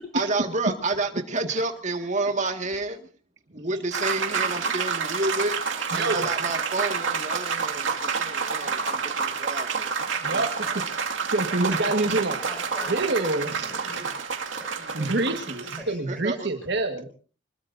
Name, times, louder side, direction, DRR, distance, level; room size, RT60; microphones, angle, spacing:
voice 1, 0.1-3.0 3.5-5.6 5.9-9.9 10.2-10.8 16.1-16.5, right 2 dB, 40° right, 5 dB, 1.9 m, -30 dB
sound 1, 3.9-15.8, right 5 dB, 85° right, 2.2 m, -29 dB
voice 2, 5.9-6.3 10.2-12.4 12.9-14.0 14.9-17.1, right 2 dB, 60° right, 4 dB, 1.7 m, -27 dB
voice 3, 11.3-16.5, equal, 5° left, 0 dB, 7.5 m, -44 dB
25.0 x 21.0 x 2.7 m, 0.38 s
head